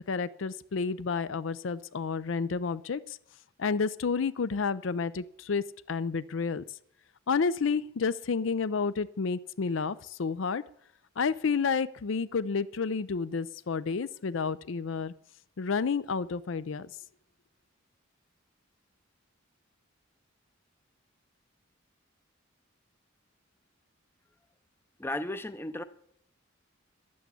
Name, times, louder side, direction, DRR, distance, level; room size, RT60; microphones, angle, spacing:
voice 1, 0.1-3.2 3.6-6.6 7.3-10.6 11.2-15.1 15.6-16.9, left 5 dB, 65° left, 16 dB, 0.5 m, -30 dB
voice 2, 25.0-25.8, left 1 dB, 10° left, 11 dB, 0.6 m, -34 dB
11.5 x 8.5 x 8.3 m, 0.68 s
head